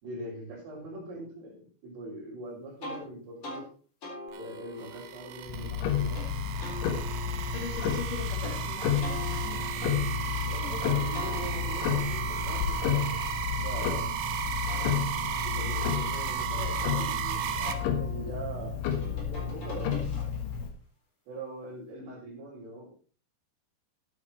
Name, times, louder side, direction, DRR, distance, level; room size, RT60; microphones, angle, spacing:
voice 1, 0.0-3.6 4.3-6.3 10.5-13.2 13.6-14.0 15.4-20.0 21.3-22.9, right 2 dB, 60° right, -9 dB, 6.6 m, -42 dB
sound 1, 2.8-3.0 3.4-3.6 4.0-6.3 6.6-8.5 9.0-10.7 11.1-14.0 14.4-17.1 17.6-20.6, left 1 dB, 30° left, 4.2 m, -44 dB
sound 2, 4.3-17.7, right 9 dB, 90° right, 3.7 m, -35 dB
Tick-tock, 5.5-20.7, left 8 dB, 75° left, 3.9 m, -31 dB
voice 2, 7.5-9.7, left 4 dB, 50° left, 4 dB, 3.1 m, -41 dB
13.5 x 9.1 x 4.3 m, 0.41 s
omnidirectional pair, 5.7 m